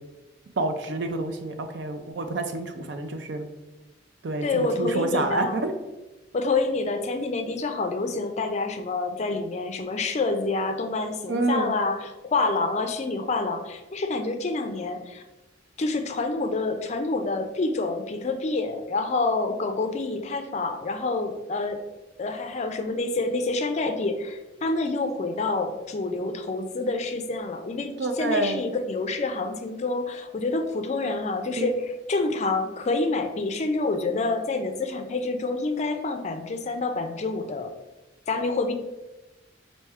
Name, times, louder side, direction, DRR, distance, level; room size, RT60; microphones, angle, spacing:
voice 1, 0.6-3.5 4.2-5.8 11.3-11.7 12.5-12.6 28.0-28.6 31.6-31.7, right 2 dB, 65° right, 7 dB, 0.5 m, -28 dB
voice 2, 4.4-5.6 6.3-15.2 15.8-21.8 22.2-27.9 28.2-37.7 38.3-38.7, left 3 dB, 35° left, 6 dB, 0.4 m, -27 dB
4.3 x 2.6 x 3.5 m, 1.1 s
head